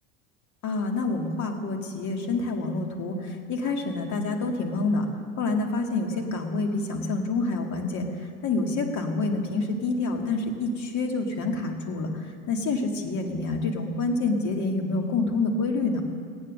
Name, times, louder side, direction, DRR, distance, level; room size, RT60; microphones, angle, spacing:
voice 1, 0.6-5.1 5.4-8.1 8.4-16.0, left 3 dB, 45° left, 3 dB, 2.1 m, -27 dB
16.0 x 9.2 x 6.4 m, 2.2 s
figure-of-eight pair, 70°, 41 cm